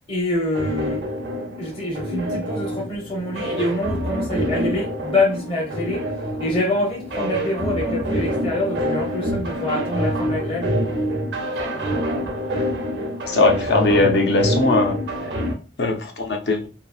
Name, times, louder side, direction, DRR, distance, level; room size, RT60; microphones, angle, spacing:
voice 1, 0.1-1.1 1.6-6.1 6.4-10.8 11.3-12.0, left 1 dB, 30° left, 0.8 m, -26 dB
sound 1, 0.5-15.5, equal, 85° right, 0.6 m, -26 dB
voice 2, 13.3-15.0 15.8-16.7, left 3 dB, 70° left, 0.6 m, -19 dB
2.8 x 2.6 x 2.3 m
head